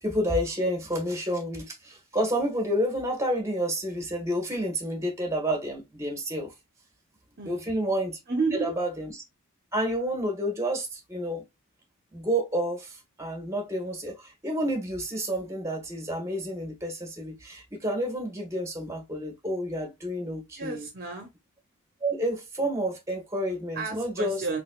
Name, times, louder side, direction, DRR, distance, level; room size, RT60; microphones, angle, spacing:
voice 1, 0.0-6.5 7.4-8.2 8.6-9.1 9.7-11.4 12.1-20.9 22.0-24.4, equal, 15° right, 1.4 m, -30 dB
voice 2, 7.4-7.7 8.3-8.7 20.6-21.3 23.7-24.6, right 4 dB, 45° right, 0.9 m, -31 dB
4.0 x 3.4 x 2.3 m
head